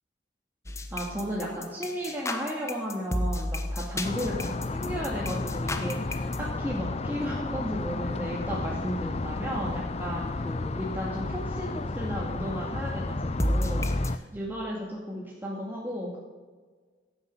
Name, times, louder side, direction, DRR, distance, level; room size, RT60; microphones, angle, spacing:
sound 1, 0.7-6.4 13.4-14.1, left 1 dB, 15° left, 1.1 m, -31 dB
voice 1, 0.9-11.7 12.0-16.2, equal, 10° right, -4 dB, 2.2 m, -34 dB
sound 2, 4.0-14.2, left 2 dB, 35° left, 0.5 m, -32 dB
16.0 x 9.8 x 7.7 m, 1.4 s
head